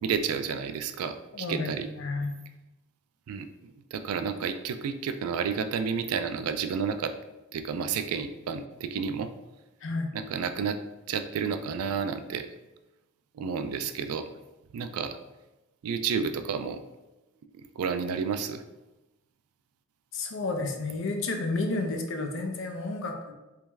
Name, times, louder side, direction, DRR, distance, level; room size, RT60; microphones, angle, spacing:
voice 1, 0.0-1.9 3.3-7.1 7.5-9.3 10.1-10.8 11.1-12.5 13.3-14.3 14.7-15.2 15.8-16.8 17.5-18.6, right 6 dB, 80° right, 9 dB, 0.3 m, -31 dB
voice 2, 1.3-1.7 2.0-2.3 9.8-10.1 20.1-23.3, left 3 dB, 60° left, 3 dB, 0.6 m, -31 dB
3.4 x 3.1 x 3.3 m, 1.0 s
head